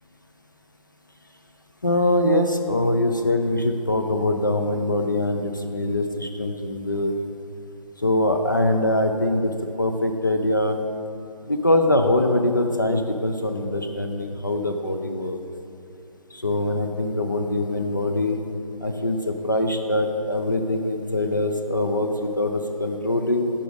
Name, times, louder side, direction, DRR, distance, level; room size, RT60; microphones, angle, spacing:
voice 1, 1.8-7.1 8.0-10.8 11.5-15.4 16.3-18.4 18.8-23.5, left 1 dB, 35° left, 5 dB, 0.4 m, -23 dB
9.9 x 5.2 x 5.0 m, 2.6 s
figure-of-eight pair, 160°, 19 cm